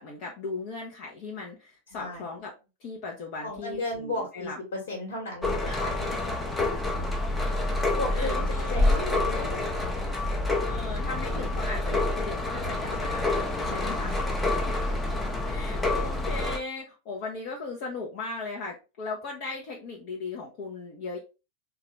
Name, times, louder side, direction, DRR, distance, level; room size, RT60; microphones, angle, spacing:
voice 1, 0.0-2.5 2.8-4.6 5.6-6.2 7.1-7.3 8.1-9.0 10.6-14.2 14.4-14.9 15.4-21.2, left 3 dB, 45° left, -1 dB, 0.7 m, -38 dB
voice 2, 1.9-2.2 3.4-6.1 7.6-9.8 12.9-13.0 13.9-14.3, left 2 dB, 60° left, -1 dB, 1.4 m, -35 dB
sound 1, 5.4-16.6, left 2 dB, 10° left, 0.7 m, -27 dB
3.8 x 2.3 x 3.1 m, 0.30 s
figure-of-eight pair, 90°, 0 cm